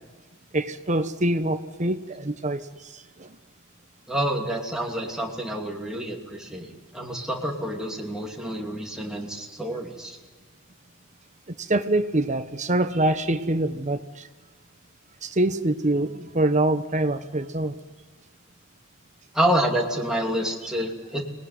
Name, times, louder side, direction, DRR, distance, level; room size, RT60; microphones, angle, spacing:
voice 1, 0.5-3.3 11.6-14.3 15.2-17.8, right 1 dB, 35° right, 10 dB, 1.1 m, -25 dB
voice 2, 4.1-10.2 19.3-21.2, right 1 dB, 5° right, -2 dB, 2.8 m, -28 dB
25.5 x 19.0 x 9.6 m, 1.3 s
head